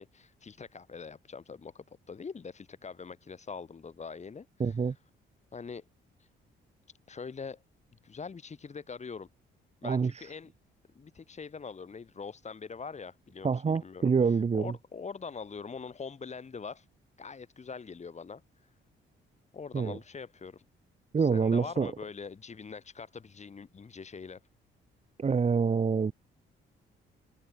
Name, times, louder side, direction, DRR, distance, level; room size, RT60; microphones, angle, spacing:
voice 1, 0.0-5.0 5.5-5.8 6.2-6.3 7.1-7.6 8.0-9.3 9.8-10.5 10.9-16.9 17.2-18.7 19.5-20.6 21.2-24.4, left 5 dB, 35° left, 2.9 m, -43 dB
voice 2, 4.6-4.9 9.8-10.3 13.4-14.7 19.7-20.0 21.1-21.9 25.2-26.1, right 5 dB, 35° right, 1.5 m, -26 dB
cardioid pair, 90°, 20 cm